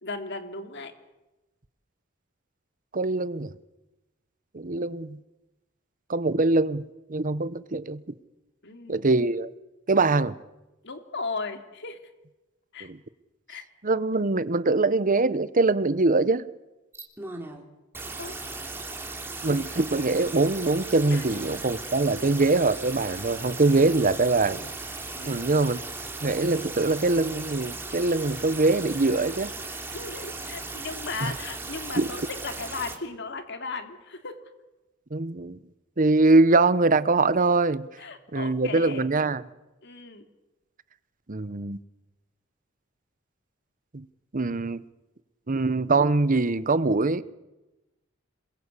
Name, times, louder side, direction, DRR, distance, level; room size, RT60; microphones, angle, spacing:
voice 1, 0.0-0.9 8.6-9.1 10.8-12.0 12.7-12.9 13.5-13.6 18.2-18.6 21.1-21.2 25.1-25.5 29.9-34.4 38.0-39.1 39.8-40.2, left 4 dB, 60° left, 2.8 m, -36 dB
voice 2, 2.9-3.5 4.5-5.2 6.1-6.8 7.1-8.0 8.9-9.5 9.9-10.4 12.8-13.0 13.8-16.4 19.4-24.7 25.3-25.8 26.2-29.5 31.2-31.3 31.9-32.1 35.1-35.6 36.0-37.9 38.3-39.4 41.3-41.8 43.9-44.0 44.3-44.8 45.5-47.2, right 3 dB, 40° right, 0.9 m, -23 dB
sound 1, 16.9-17.6 17.9-33.0, right 3 dB, 10° right, 3.1 m, -37 dB
27.5 x 21.5 x 8.3 m
head